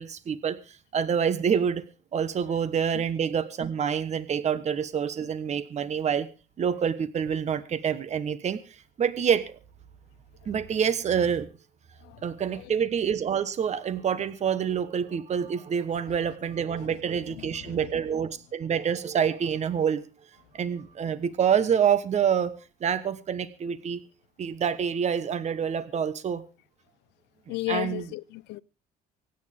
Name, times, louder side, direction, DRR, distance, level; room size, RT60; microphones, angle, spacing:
voice 1, 0.0-1.8 2.1-6.3 6.6-9.6 10.5-11.5 12.2-20.0 20.5-22.5 22.8-24.0 24.4-26.4 27.5-28.1, right 7 dB, 40° right, 1.3 m, -27 dB
voice 2, 27.5-28.6, left 22 dB, 90° left, 0.6 m, -33 dB
25.0 x 9.3 x 3.6 m
cardioid pair, 110°, 17 cm